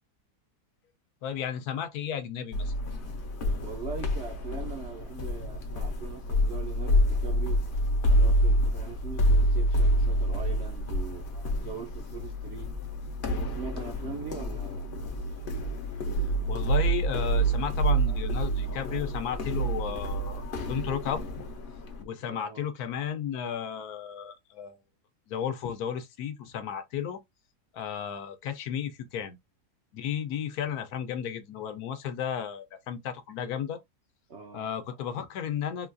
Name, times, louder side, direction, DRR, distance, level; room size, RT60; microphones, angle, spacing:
voice 1, 1.2-2.7 16.1-21.5 22.0-24.8 25.3-27.2 27.7-29.4 29.9-33.8 34.5-35.9, left 8 dB, 70° left, 1.1 m, -34 dB
sound 1, 2.5-22.0, right 1 dB, 50° left, 0.6 m, -28 dB
voice 2, 3.6-7.6 8.1-12.7 13.3-14.9 18.1-18.2 18.9-19.0 20.3-20.5 22.3-22.7 34.3-34.8, right 6 dB, 60° right, 0.7 m, -42 dB
sound 2, 12.2-19.1, left 5 dB, 80° right, 1.7 m, -42 dB
3.7 x 2.3 x 2.5 m
omnidirectional pair, 1.7 m